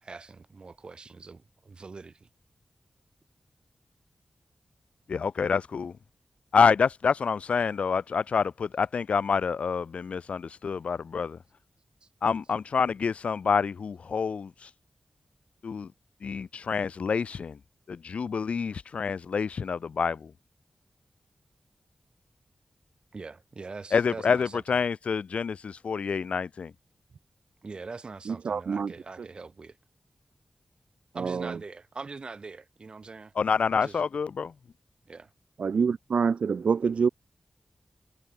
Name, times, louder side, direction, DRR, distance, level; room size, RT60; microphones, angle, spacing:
voice 1, 0.0-2.3 12.0-12.1 23.1-24.6 27.6-29.8 31.1-33.3 33.7-34.0 35.1-35.3, right 4 dB, 50° right, 2.8 m, -43 dB
voice 2, 5.1-6.0 6.5-11.4 12.2-14.7 15.6-15.9 16.2-17.6 17.9-20.3 23.9-26.7 33.4-34.5, left 6 dB, 85° left, 1.8 m, -27 dB
voice 3, 28.2-29.3 31.1-31.6 35.6-37.1, right 5 dB, 85° right, 1.4 m, -27 dB
wide cardioid pair, 110°, 2 cm